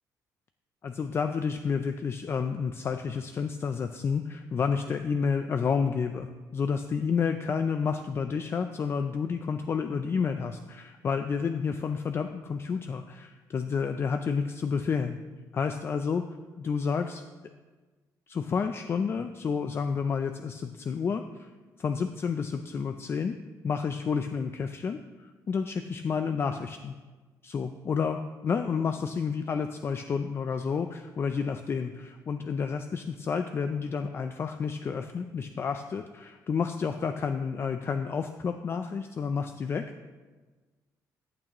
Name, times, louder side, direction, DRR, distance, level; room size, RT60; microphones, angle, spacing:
voice 1, 0.8-15.2 15.5-16.2 16.6-17.2 18.3-21.5 21.8-23.4 23.6-26.9 27.4-40.1, left 6 dB, 35° left, 8 dB, 0.4 m, -30 dB
14.5 x 8.8 x 3.0 m, 1.3 s
cardioid pair, 120°, 7 cm